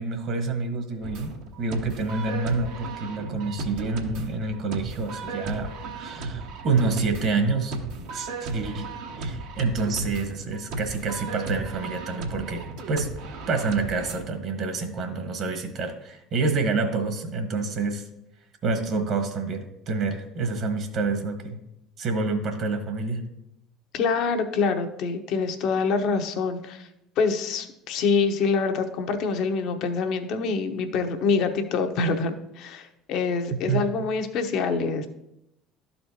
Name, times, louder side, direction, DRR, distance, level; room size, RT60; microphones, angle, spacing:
voice 1, 0.0-7.8 8.1-13.1 13.5-18.0 18.6-21.6 22.0-23.2 33.7-33.9, right 4 dB, 55° right, 6 dB, 1.3 m, -28 dB
sound 1, 1.0-14.2, right 3 dB, 70° right, 1.0 m, -35 dB
voice 2, 23.9-26.9 27.2-35.1, left 4 dB, 65° left, 7 dB, 0.9 m, -25 dB
12.5 x 4.3 x 2.8 m, 0.83 s
hypercardioid pair, 70°, 0 cm